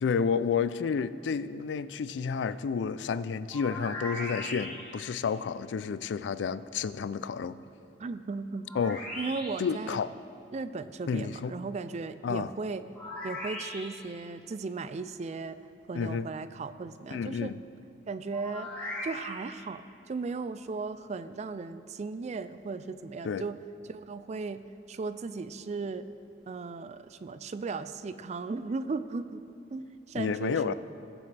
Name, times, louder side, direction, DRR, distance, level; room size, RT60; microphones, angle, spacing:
voice 1, 0.0-7.6 8.7-9.0 9.6-10.1 11.1-11.5 12.2-12.5 15.9-16.3 17.1-17.6 23.2-23.5 30.1-30.7, left 6 dB, 85° left, 15 dB, 0.4 m, -30 dB
sound 1, 3.5-5.1 8.6-9.8 12.9-14.2 18.3-19.6, left 1 dB, 10° left, 2.5 m, -39 dB
voice 2, 8.0-8.7 9.2-10.0 10.5-12.8 13.2-15.6 15.9-17.5 18.1-18.7 19.0-23.6 23.9-24.6 24.9-26.1 26.5-29.4 29.7-30.7, right 4 dB, 40° right, 12 dB, 0.4 m, -36 dB
20.0 x 7.3 x 3.4 m, 2.6 s
head